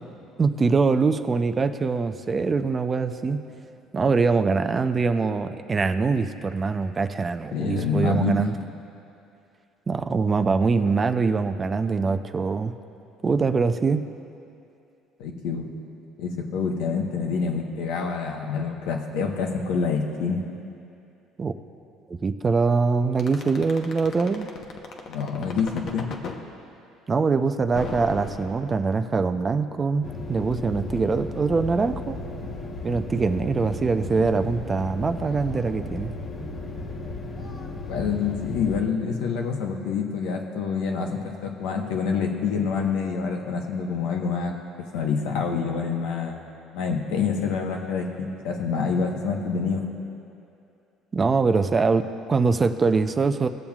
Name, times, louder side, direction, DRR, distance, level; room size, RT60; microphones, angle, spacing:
voice 1, 0.4-3.4 3.9-8.5 9.9-12.7 13.2-14.0 21.4-21.5 22.1-24.5 27.1-32.2 32.8-36.1 51.1-53.5, right 4 dB, 30° right, 9 dB, 0.4 m, -23 dB
voice 2, 7.5-8.5 15.2-15.7 16.2-20.4 25.1-26.1 37.9-44.5 44.9-46.5 46.7-49.9, left 5 dB, 80° left, 2 dB, 1.0 m, -27 dB
sound 1, 23.2-26.4 27.7-29.1, left 5 dB, 55° left, 0.9 m, -35 dB
sound 2, 30.0-38.8, left 2 dB, 35° left, 1.2 m, -35 dB
20.0 x 7.1 x 2.4 m, 2.6 s
cardioid pair, 100°, 0 cm